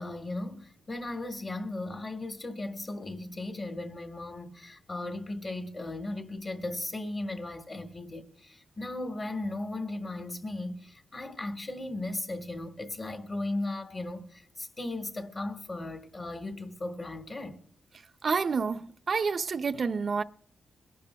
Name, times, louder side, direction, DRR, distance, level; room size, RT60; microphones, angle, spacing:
voice 1, 0.0-17.6, left 2 dB, 30° left, 1.6 m, -36 dB
voice 2, 18.2-20.2, right 5 dB, 45° right, 0.5 m, -29 dB
23.0 x 12.0 x 2.3 m
wide cardioid pair, 130°, 0 cm